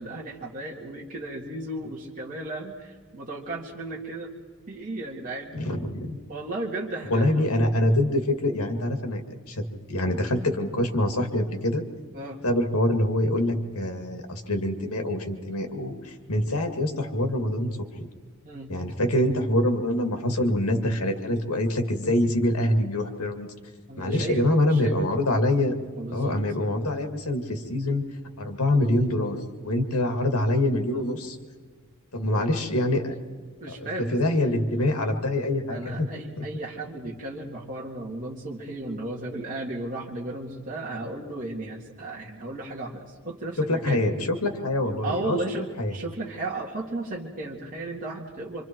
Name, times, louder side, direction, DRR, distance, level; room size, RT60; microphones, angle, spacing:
voice 1, 0.0-4.3 4.7-5.6 6.3-7.4 12.1-12.4 18.4-18.8 23.9-25.0 25.9-26.4 32.2-32.5 33.6-34.3 35.7-44.0 45.0-48.6, right 2 dB, 40° right, -4 dB, 2.2 m, -35 dB
voice 2, 5.5-6.2 7.1-9.2 9.5-9.6 9.9-11.8 12.4-17.8 18.7-23.5 24.0-25.7 26.1-28.0 28.4-29.4 29.6-31.4 32.1-33.1 33.7-36.1 36.4-36.5 43.6-45.4 45.8-45.9, left 1 dB, 85° left, 5 dB, 2.3 m, -25 dB
26.0 x 26.0 x 4.6 m, 1.5 s
head